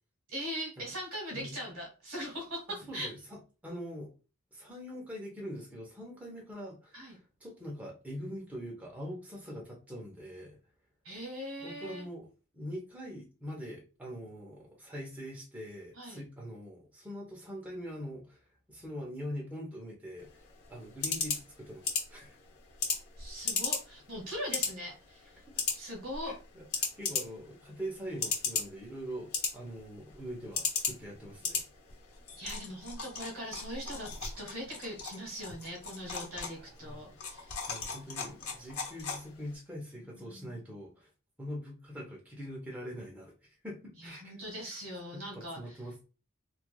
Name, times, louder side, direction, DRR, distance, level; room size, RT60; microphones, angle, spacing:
voice 1, 0.3-3.1 6.9-7.2 11.0-12.1 15.9-16.2 23.2-25.3 25.7-26.4 32.4-37.6 39.9-40.5 44.0-45.6, equal, 70° right, 0 dB, 1.6 m, -41 dB
voice 2, 2.9-3.4 3.6-4.1 4.5-10.6 11.6-12.3 12.5-22.4 26.3-31.6 36.5-37.2 37.7-41.1 41.4-44.3 44.6-44.7 45.1-46.0, equal, 5° right, -3 dB, 0.8 m, -43 dB
sound 1, 20.2-39.6, left 5 dB, 85° left, 0.9 m, -37 dB
3.1 x 2.4 x 2.3 m, 0.33 s
head